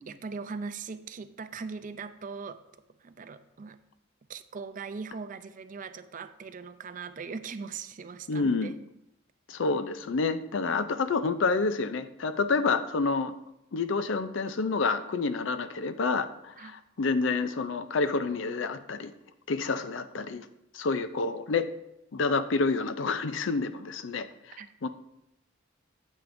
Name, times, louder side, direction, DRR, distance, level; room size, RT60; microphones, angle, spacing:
voice 1, 0.1-2.6 3.0-3.8 4.3-8.8 16.6-16.7 24.6-24.7, right 5 dB, 40° right, 11 dB, 0.4 m, -40 dB
voice 2, 8.3-8.7 9.5-13.3 13.7-19.1 19.5-20.5 20.7-21.7 22.1-24.9, left 4 dB, 65° left, 11 dB, 0.5 m, -28 dB
8.9 x 8.5 x 2.6 m, 0.85 s
head